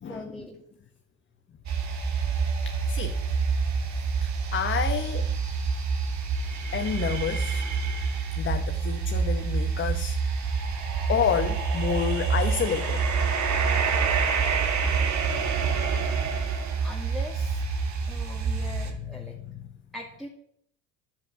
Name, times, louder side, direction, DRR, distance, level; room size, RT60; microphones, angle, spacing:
voice 1, 0.0-0.6 16.8-17.6 18.0-19.4 19.9-20.3, left 1 dB, ahead, 2.4 m, -41 dB
sound 1, 1.7-18.9, right 5 dB, 50° right, 3.1 m, -27 dB
voice 2, 2.6-3.2 4.2-5.3 6.7-7.6 8.4-10.2 11.1-13.0 18.5-18.6 19.4-19.6, left 7 dB, 35° left, 1.2 m, -29 dB
10.5 x 7.5 x 9.1 m
supercardioid pair, 85°, 35 cm